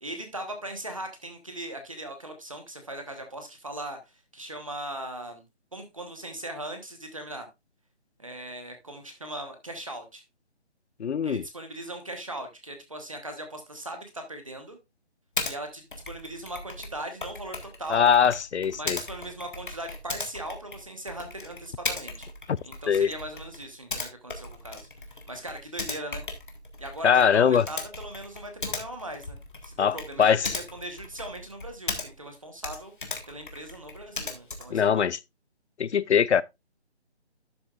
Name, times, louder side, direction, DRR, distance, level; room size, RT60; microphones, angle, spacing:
voice 1, 0.0-4.0 4.3-5.4 5.7-7.5 8.2-10.2 11.2-14.8 15.4-18.1 18.8-22.3 22.6-24.9 25.3-26.2 26.8-32.9 33.3-35.1, right 1 dB, 30° right, 1.2 m, -39 dB
voice 2, 11.0-11.4 17.9-19.0 22.9-23.1 27.0-27.6 29.8-30.5 34.7-35.2 35.8-36.4, left 7 dB, 85° left, 0.6 m, -22 dB
Typing, 15.4-15.6 15.9-32.3 32.6-34.8, left 3 dB, 50° left, 1.7 m, -38 dB
11.5 x 6.9 x 2.4 m
figure-of-eight pair, 180°, 33 cm